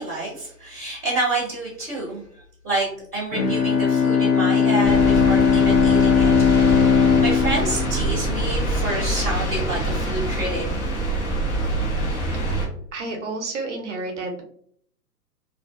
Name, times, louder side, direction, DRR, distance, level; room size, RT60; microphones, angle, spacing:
voice 1, 0.0-2.9 3.1-6.3 6.6-10.7, right 2 dB, 10° left, -15 dB, 0.5 m, -28 dB
Bowed string instrument, 3.3-8.9, left 6 dB, 75° left, 0.9 m, -19 dB
sound 1, 4.8-12.7, right 1 dB, 45° left, 0.9 m, -25 dB
voice 2, 12.9-14.4, right 3 dB, 50° right, 2 dB, 0.6 m, -30 dB
2.4 x 2.3 x 2.3 m, 0.62 s
hypercardioid pair, 150°, 48 cm